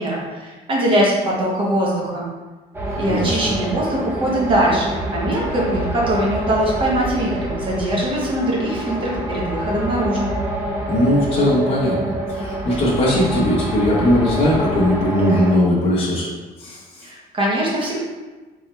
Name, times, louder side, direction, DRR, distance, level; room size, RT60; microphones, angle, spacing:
voice 1, 0.0-2.3 3.0-10.3 17.0-18.0, right 1 dB, 30° right, -4 dB, 1.0 m, -21 dB
sound 1, 2.7-15.5, right 1 dB, 15° right, 0.6 m, -26 dB
voice 2, 2.9-3.5 10.9-12.0 12.3-16.3 16.6-17.1, left 1 dB, 35° left, -7 dB, 1.0 m, -19 dB
4.2 x 3.7 x 3.1 m, 1.2 s
cardioid pair, 175°, 17 cm